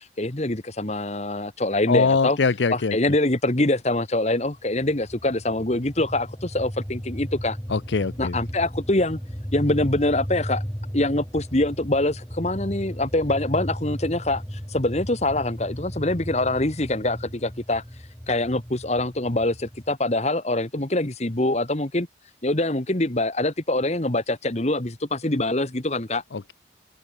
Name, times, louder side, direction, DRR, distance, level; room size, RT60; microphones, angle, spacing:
voice 1, 0.0-2.4 2.7-7.6 8.2-9.2 9.5-10.6 10.9-17.8 18.3-22.1 22.4-26.2, left 2 dB, 35° left, 1.6 m, -24 dB
voice 2, 1.9-3.0 7.7-8.4 26.3-26.5, left 4 dB, 70° left, 0.6 m, -22 dB
sound 1, 4.6-19.9, equal, 10° left, 4.7 m, -35 dB
head